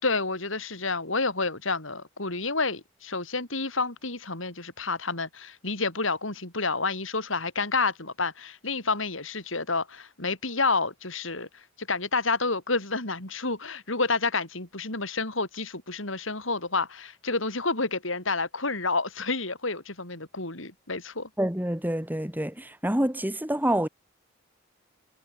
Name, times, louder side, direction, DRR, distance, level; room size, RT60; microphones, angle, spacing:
voice 1, 0.0-21.3, left 3 dB, 70° left, 5.9 m, -29 dB
voice 2, 21.4-23.9, right 1 dB, 10° right, 2.5 m, -27 dB
head